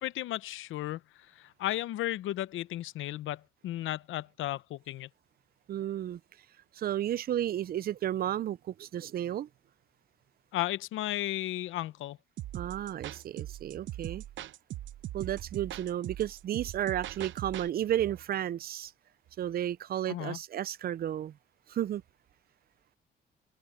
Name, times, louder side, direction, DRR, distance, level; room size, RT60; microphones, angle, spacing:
voice 1, 0.0-1.0 1.4-5.1 10.5-12.2 20.1-20.4, left 14 dB, 80° left, 0.8 m, -34 dB
voice 2, 5.7-6.2 6.8-9.5 12.5-14.2 15.1-18.9 19.4-21.3 21.7-22.0, right 11 dB, 50° right, 0.5 m, -33 dB
sound 1, 12.4-17.7, right 13 dB, 75° right, 0.8 m, -40 dB
open air
cardioid pair, 90°, 20 cm